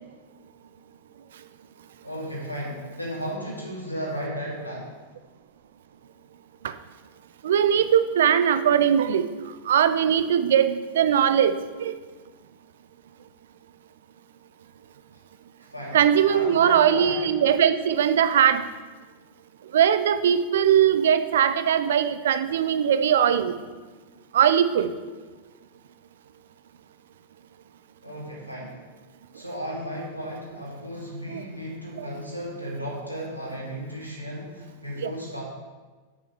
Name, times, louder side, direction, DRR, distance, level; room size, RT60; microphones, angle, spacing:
voice 1, 2.0-4.9 15.1-15.2 15.6-16.0 16.3-17.2 28.0-28.8 29.3-35.4, equal, 90° left, -4 dB, 2.5 m, -34 dB
voice 2, 7.4-9.3 9.7-12.0 15.9-18.6 19.7-23.5 24.3-24.9 31.3-31.4 32.0-32.1 35.0-35.1, right 9 dB, 60° right, 11 dB, 0.5 m, -20 dB
6.3 x 6.2 x 6.0 m, 1.3 s
figure-of-eight pair, 90°, 0 cm